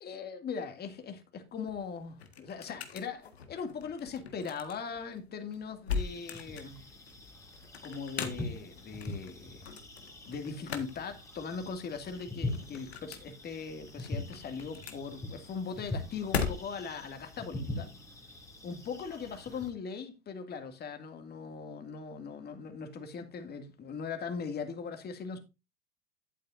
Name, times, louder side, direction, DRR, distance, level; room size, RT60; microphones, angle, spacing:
voice 1, 0.0-6.9 7.8-9.7 10.3-17.9 18.6-25.4, left 5 dB, 30° left, 2.3 m, -40 dB
sound 1, 1.5-17.0, left 6 dB, 90° left, 1.7 m, -41 dB
sound 2, 6.0-19.7, left 2 dB, 10° left, 2.5 m, -43 dB
11.0 x 8.7 x 2.6 m
hypercardioid pair, 95°, 31 cm